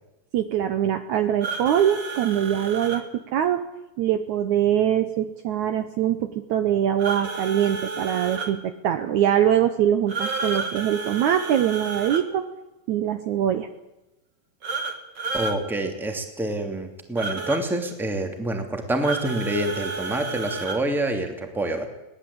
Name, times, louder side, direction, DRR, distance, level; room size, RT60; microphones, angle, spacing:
voice 1, 0.3-3.6 4.0-12.4 12.9-13.7, right 10 dB, 70° right, 9 dB, 2.0 m, -23 dB
sound 1, 1.4-3.0 7.0-8.5 10.1-12.2 14.6-15.6 17.2-17.6 19.0-20.8, right 4 dB, 35° right, 2.1 m, -31 dB
voice 2, 15.3-21.9, right 1 dB, ahead, 4 dB, 2.1 m, -27 dB
22.5 x 18.5 x 8.7 m, 0.98 s
omnidirectional pair, 4.1 m